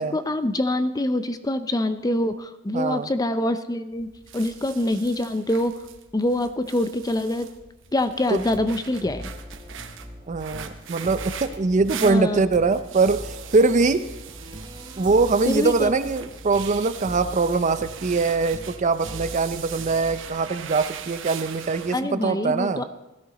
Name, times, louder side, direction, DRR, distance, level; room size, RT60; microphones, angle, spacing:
voice 1, 0.0-4.1 4.3-5.8 6.1-7.5 7.9-9.3 12.0-12.4 15.5-15.9 21.9-22.8, left 1 dB, 20° left, 11 dB, 0.5 m, -25 dB
voice 2, 2.7-3.1 8.3-8.4 10.3-14.1 15.0-22.8, right 3 dB, 35° right, 12 dB, 0.5 m, -22 dB
sound 1, 3.9-22.0, right 9 dB, 65° right, 0.9 m, -41 dB
sound 2, 8.4-20.3, equal, 20° right, 1.4 m, -41 dB
17.0 x 12.5 x 4.1 m, 1.0 s
head